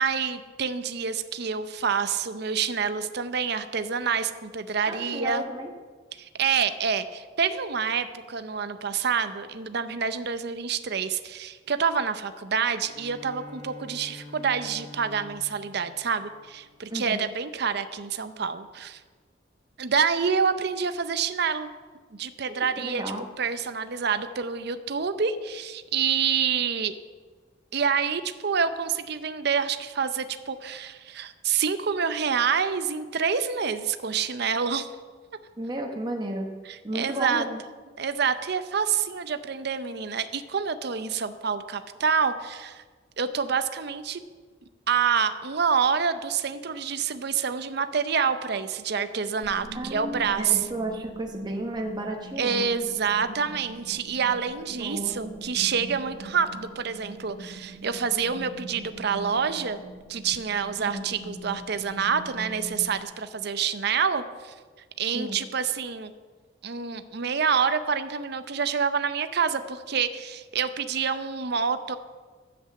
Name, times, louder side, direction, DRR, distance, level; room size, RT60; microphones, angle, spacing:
voice 1, 0.0-5.5 6.2-19.0 19.8-21.7 22.2-23.0 23.4-26.9 27.7-34.9 36.7-37.5 38.0-42.8 43.2-44.2 44.9-50.7 52.4-59.8 60.1-64.5 65.0-66.1 66.6-72.0, right 6 dB, 55° right, 11 dB, 0.6 m, -27 dB
voice 2, 4.9-5.7 16.9-17.2 22.8-23.3 35.6-36.5 36.8-37.6 49.7-52.7 54.8-55.2 60.8-61.0 65.0-65.4, right 1 dB, 20° right, 2 dB, 1.0 m, -33 dB
Bowed string instrument, 12.9-17.2, left 2 dB, 65° left, 2.5 m, -46 dB
sound 1, 49.4-63.1, right 2 dB, 80° right, 1.1 m, -43 dB
10.5 x 7.9 x 7.6 m, 1.5 s
head